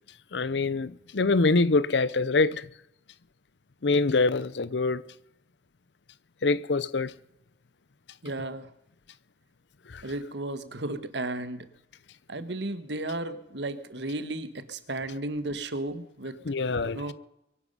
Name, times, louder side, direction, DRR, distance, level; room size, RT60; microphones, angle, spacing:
voice 1, 0.3-2.6 3.8-5.0 6.4-7.1 16.5-17.0, left 3 dB, 80° left, 0.7 m, -24 dB
voice 2, 8.2-8.7 10.0-11.7 12.3-16.4 16.8-17.1, right 2 dB, 80° right, 1.4 m, -34 dB
23.5 x 11.0 x 5.4 m
head